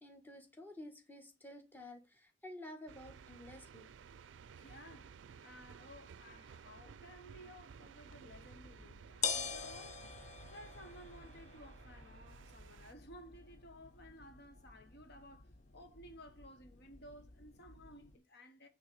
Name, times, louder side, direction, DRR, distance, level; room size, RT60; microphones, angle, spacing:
voice 1, 0.0-3.9, left 1 dB, 10° left, 1.5 m, -51 dB
sound 1, 2.9-12.9, right 6 dB, 70° right, 0.4 m, -56 dB
voice 2, 4.5-5.1 5.4-10.1 10.5-18.7, equal, 60° left, 1.2 m, -56 dB
sound 2, 8.1-18.2, left 6 dB, 40° left, 0.7 m, -46 dB
8.6 x 3.8 x 6.8 m
head